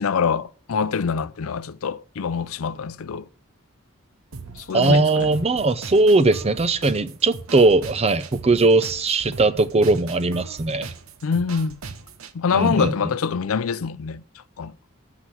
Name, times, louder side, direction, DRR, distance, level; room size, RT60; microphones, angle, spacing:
voice 1, 0.0-3.3 4.6-5.3 11.2-11.8 12.3-14.2 14.6-14.7, left 6 dB, 75° left, 0.5 m, -25 dB
sound 1, 4.3-12.3, right 4 dB, 80° right, 0.9 m, -39 dB
voice 2, 4.7-10.9 12.5-12.9, right 3 dB, 30° right, 0.6 m, -19 dB
7.9 x 5.9 x 7.9 m
head